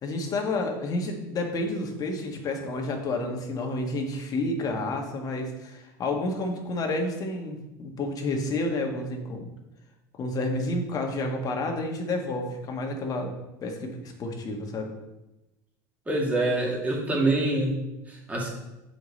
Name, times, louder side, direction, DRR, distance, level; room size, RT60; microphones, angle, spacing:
voice 1, 0.0-9.4 10.2-13.3 13.6-14.9, left 2 dB, 40° left, 2 dB, 1.5 m, -30 dB
voice 2, 16.1-17.8 18.1-18.5, right 2 dB, 15° right, -2 dB, 2.1 m, -25 dB
6.9 x 5.1 x 4.1 m, 0.97 s
supercardioid pair, 100°, 10 cm